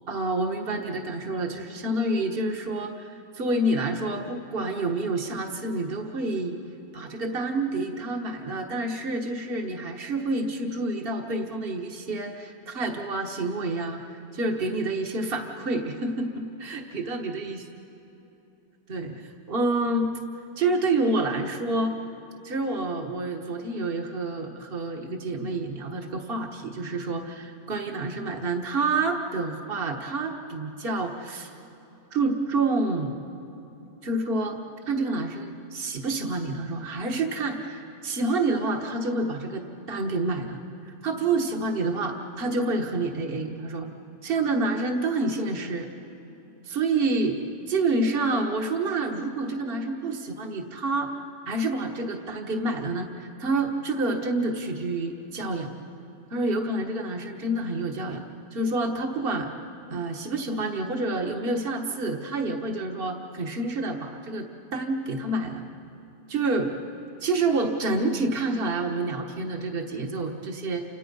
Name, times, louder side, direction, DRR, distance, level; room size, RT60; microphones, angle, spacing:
voice 1, 0.1-6.6 6.9-14.0 14.3-17.6 18.9-19.2 19.5-20.2 20.6-22.0 22.4-31.5 32.1-33.2 34.0-34.6 34.9-40.6 41.0-43.9 44.2-45.9 46.7-47.4 47.7-51.1 51.5-55.7 56.3-58.2 58.5-59.5 59.9-65.6 66.3-66.7 67.2-70.9, right 2 dB, 55° right, 3 dB, 1.6 m, -28 dB
29.5 x 26.5 x 5.5 m, 3.0 s
omnidirectional pair, 1.2 m